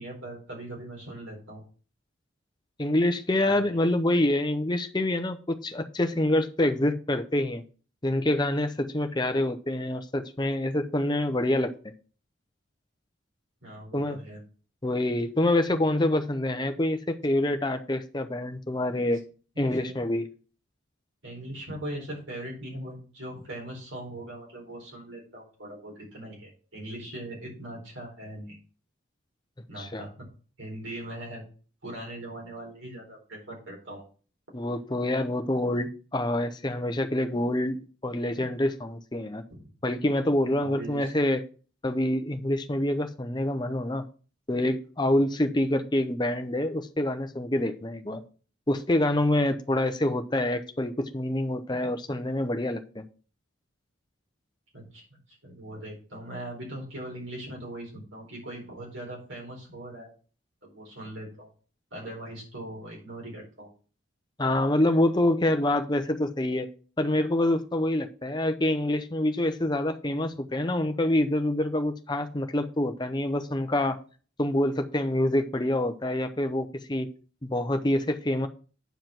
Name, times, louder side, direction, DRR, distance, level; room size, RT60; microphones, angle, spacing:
voice 1, 0.0-1.6 3.4-3.7 13.6-14.4 19.5-20.0 21.2-28.6 29.7-30.3 30.6-31.4 31.8-34.0 39.5-39.6 40.6-41.1 54.7-60.1 60.6-61.5 61.9-63.7, right 1 dB, 65° right, -2 dB, 4.5 m, -40 dB
voice 2, 2.8-7.6 8.0-11.9 13.9-14.2 14.8-19.2 19.6-20.3 29.8-30.0 34.5-39.4 39.8-41.4 41.8-44.1 44.5-48.2 48.7-53.1 64.4-66.7 67.0-74.0 74.4-77.1 77.4-78.5, left 1 dB, 20° left, 8 dB, 0.7 m, -26 dB
9.1 x 5.0 x 5.8 m, 0.39 s
head